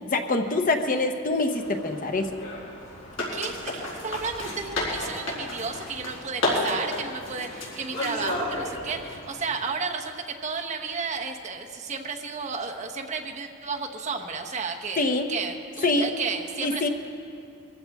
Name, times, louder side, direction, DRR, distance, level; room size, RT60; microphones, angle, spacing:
voice 1, 0.1-2.4 15.0-15.3 15.8-16.1 16.6-16.9, left 2 dB, 40° left, 6 dB, 0.8 m, -25 dB
sound 1, 1.5-9.3, left 1 dB, 80° left, 5.0 m, -32 dB
voice 2, 3.3-15.0 15.3-16.9, right 4 dB, 35° right, 2 dB, 1.0 m, -32 dB
22.5 x 15.0 x 3.6 m, 2.4 s
head